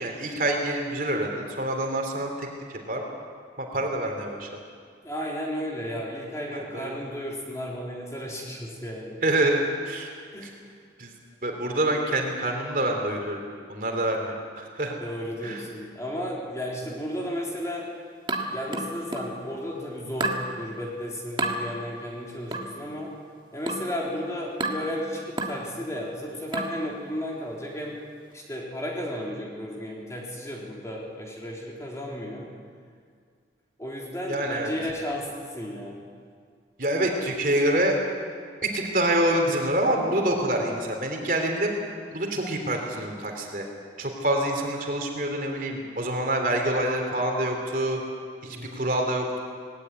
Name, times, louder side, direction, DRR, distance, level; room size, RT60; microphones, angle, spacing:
voice 1, 0.0-2.5 2.9-3.0 3.6-4.5 6.5-7.0 9.2-10.1 11.0-11.1 11.4-13.4 13.7-14.9 15.4-15.6 34.3-34.7 36.8-38.0 38.7-41.7 42.1-43.7 44.0-48.0 48.4-49.4, right 1 dB, 50° right, 2 dB, 3.5 m, -26 dB
voice 2, 5.0-9.2 10.3-10.6 15.0-17.9 18.5-23.1 23.5-28.0 28.3-32.5 33.8-36.0 48.4-48.9, equal, 15° left, -3 dB, 3.7 m, -34 dB
sound 1, 18.3-19.4 20.2-20.5 21.4-21.6 22.5-22.8 23.7-23.9 24.6-24.9 25.4-25.6 26.5-26.8, right 2 dB, 25° right, 1.7 m, -30 dB
19.5 x 17.0 x 9.8 m, 2.1 s
head